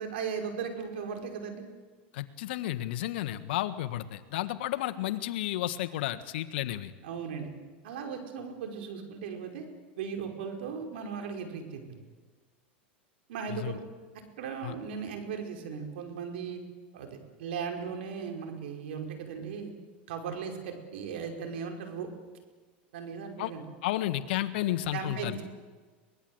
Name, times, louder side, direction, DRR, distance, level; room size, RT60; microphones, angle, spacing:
voice 1, 0.0-1.6 7.0-7.5 7.8-9.7 10.0-11.8 13.3-13.8 14.4-16.6 16.9-19.7 20.1-22.1 22.9-23.6 24.9-25.4, right 6 dB, 75° right, 4 dB, 5.2 m, -37 dB
voice 2, 2.1-6.9 13.5-13.8 14.6-14.7 23.4-23.5 23.8-25.4, left 14 dB, 70° left, 11 dB, 1.5 m, -32 dB
23.5 x 20.0 x 8.0 m, 1.4 s
hypercardioid pair, 115°, 6 cm